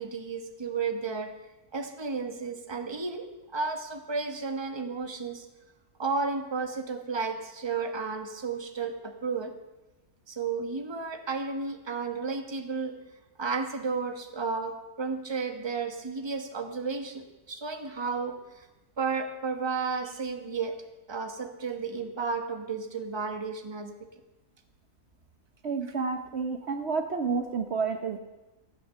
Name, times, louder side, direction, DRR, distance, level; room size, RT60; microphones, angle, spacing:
voice 1, 0.0-1.3 1.7-3.3 3.5-5.5 6.0-9.5 10.3-12.9 13.4-18.7 19.0-20.8 21.1-23.9, right 4 dB, 20° right, 6 dB, 1.2 m, -33 dB
voice 2, 25.6-28.2, right 5 dB, 50° right, 5 dB, 1.1 m, -30 dB
15.5 x 9.5 x 6.8 m, 1.1 s
omnidirectional pair, 1.5 m